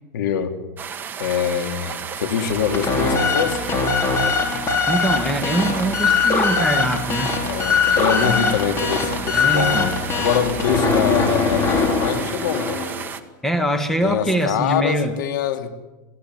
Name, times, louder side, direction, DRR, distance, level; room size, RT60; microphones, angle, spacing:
voice 1, 0.1-0.5 1.2-3.7 7.4-12.8 14.0-15.7, left 8 dB, 75° left, 7 dB, 3.2 m, -24 dB
sound 1, 0.8-13.2, right 7 dB, 20° right, 1.7 m, -33 dB
sound 2, 2.5-13.1, left 4 dB, 25° left, 4.3 m, -21 dB
voice 2, 4.9-7.4 8.0-8.5 9.3-9.9 13.4-15.1, right 1 dB, 5° left, 7 dB, 1.8 m, -23 dB
27.0 x 17.5 x 9.9 m, 1.1 s
supercardioid pair, 155°, 10 cm